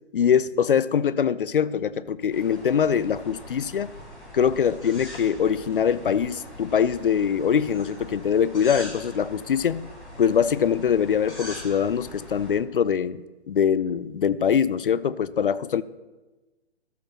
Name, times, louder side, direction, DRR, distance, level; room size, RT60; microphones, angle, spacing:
voice 1, 0.1-3.9 4.3-9.9 10.2-13.2 13.5-15.8, left 8 dB, 55° left, 17 dB, 0.4 m, -23 dB
sound 1, 2.3-12.6, left 1 dB, 85° left, 3.7 m, -42 dB
13.0 x 5.0 x 5.8 m, 1.2 s
figure-of-eight pair, 130°, 34 cm